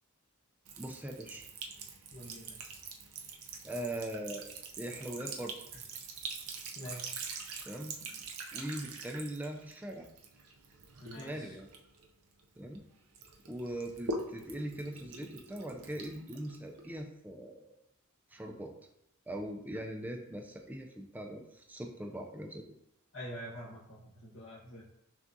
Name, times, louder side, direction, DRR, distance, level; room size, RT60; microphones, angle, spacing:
Sink (filling or washing) / Trickle dribble, 0.6-12.8 13.1-17.0, right 3 dB, 80° right, 0.6 m, -44 dB
voice 1, 0.8-1.5 3.6-4.5 4.8-5.5 7.6-8.0 8.5-10.1 11.2-11.7 12.6-12.8 13.5-17.8 18.3-18.7 19.3-22.6, right 1 dB, 10° right, 3 dB, 0.3 m, -41 dB
voice 2, 2.1-2.7 6.7-7.3 11.0-11.5 23.1-24.8, equal, 60° left, -7 dB, 0.9 m, -46 dB
6.0 x 2.4 x 2.6 m, 0.81 s
head